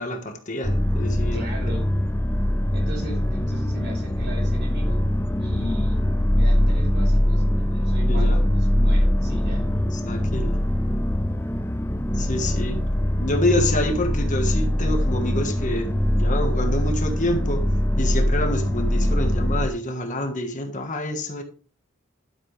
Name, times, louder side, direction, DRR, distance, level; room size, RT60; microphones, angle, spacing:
voice 1, 0.0-1.4 8.1-8.4 9.9-10.6 12.1-12.8 13.2-17.7 18.0-21.4, left 1 dB, 35° left, 1.5 m, -27 dB
sound 1, 0.6-19.7, left 1 dB, 10° left, 0.5 m, -22 dB
voice 2, 1.1-1.9 2.7-5.0 5.4-6.0 6.3-9.6, equal, 55° right, 6.4 m, -37 dB
12.0 x 8.8 x 3.3 m
head